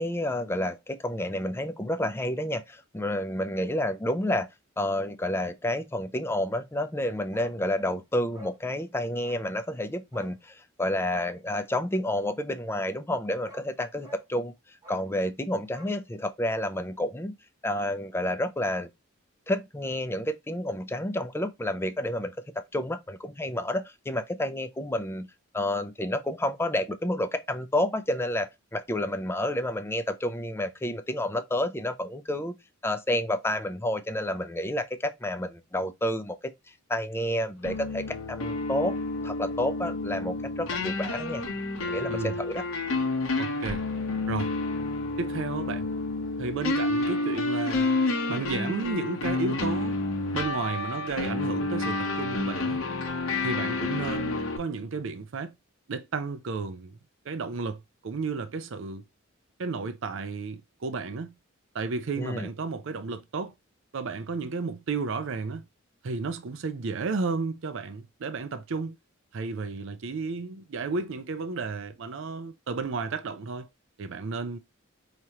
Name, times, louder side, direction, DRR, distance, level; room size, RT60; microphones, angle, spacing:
voice 1, 0.0-4.5 4.8-14.5 14.9-17.3 17.6-18.9 19.5-22.3 22.7-25.3 25.5-32.5 32.8-36.4 36.9-38.0 38.3-39.0 39.2-41.4 41.8-42.6 62.2-62.5, left 1 dB, 10° left, 0.5 m, -30 dB
Bark, 7.3-7.6 7.9-8.0 8.3-8.6 9.2-9.5 10.1-10.4 11.0-11.4 13.0-13.1 13.5-13.7 14.0-14.3 14.8-15.1 15.7-16.7 17.0-17.1, left 1 dB, 20° right, 1.2 m, -48 dB
sound 1, 37.6-54.6, left 2 dB, 80° left, 0.9 m, -29 dB
voice 2, 43.4-43.8 44.3-44.5 45.2-45.9 46.4-48.0 48.3-50.0 50.3-52.8 53.4-55.5 55.9-57.0 57.3-59.0 59.6-61.3 61.7-63.5 63.9-65.6 66.0-69.0 69.3-73.7 74.0-74.6, right 4 dB, 65° right, 0.5 m, -33 dB
4.8 x 3.0 x 2.9 m
head